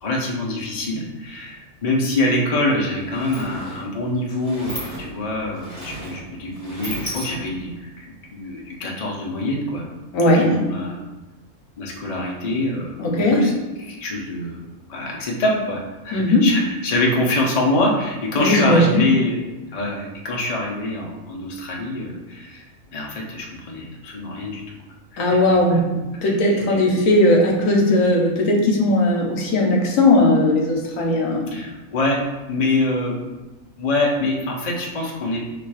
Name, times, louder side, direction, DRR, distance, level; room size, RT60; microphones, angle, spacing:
voice 1, 0.0-9.9 10.3-11.0 11.8-13.5 13.8-14.6 14.9-19.4 19.7-22.7 22.9-24.7 25.1-25.8 26.2-27.0 31.5-32.2 32.5-33.2 33.8-35.4, left 2 dB, 40° left, -2 dB, 0.7 m, -25 dB
Sliding door, 3.0-7.8, right 1 dB, 15° right, 1.0 m, -36 dB
voice 2, 10.1-10.5 13.0-13.4 16.1-16.4 18.4-19.0 25.2-25.9 26.2-31.5, left 1 dB, 75° left, 0 dB, 1.2 m, -17 dB
3.3 x 3.1 x 4.7 m, 1.1 s
omnidirectional pair, 1.4 m